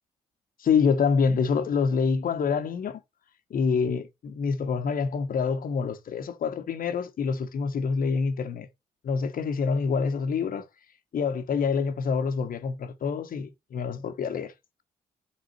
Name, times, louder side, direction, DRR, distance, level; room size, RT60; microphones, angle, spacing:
voice 1, 0.6-3.0 3.5-8.7 9.0-10.6 11.1-14.5, left 5 dB, 60° left, 1.3 m, -26 dB
6.5 x 3.7 x 4.5 m
hypercardioid pair, 40°, 17 cm